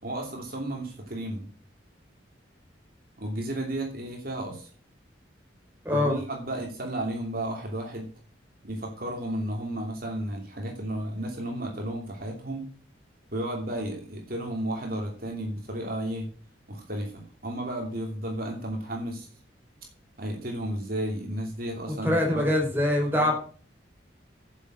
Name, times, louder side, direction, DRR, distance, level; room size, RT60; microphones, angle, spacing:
voice 1, 0.0-1.5 3.2-4.7 5.9-8.1 8.6-12.6 13.3-16.3 16.7-19.3 20.2-22.5 23.2-23.3, right 1 dB, 50° right, 1 dB, 2.9 m, -33 dB
voice 2, 5.8-6.2 22.0-23.3, left 1 dB, 10° right, -1 dB, 4.5 m, -23 dB
9.3 x 7.5 x 7.5 m, 0.41 s
head